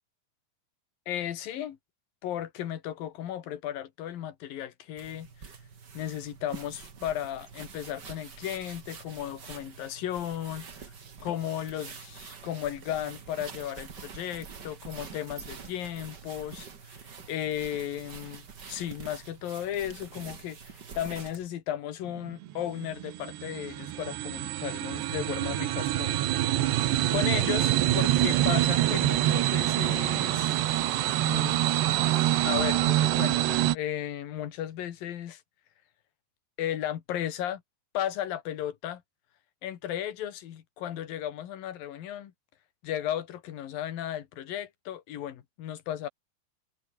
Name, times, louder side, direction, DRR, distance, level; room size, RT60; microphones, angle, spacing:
voice 1, 1.1-1.8 2.2-5.3 5.9-10.7 11.2-17.0 17.3-26.5 27.1-30.5 31.2-31.7 32.4-35.4 36.6-37.6 37.9-39.0 39.6-42.3 42.8-46.1, left 11 dB, 65° left, 3.4 m, -35 dB
sound 1, 5.0-21.5, right 6 dB, 35° right, 1.8 m, -46 dB
sound 2, 22.2-33.8, right 14 dB, 85° right, 3.5 m, -26 dB
omnidirectional pair, 4.8 m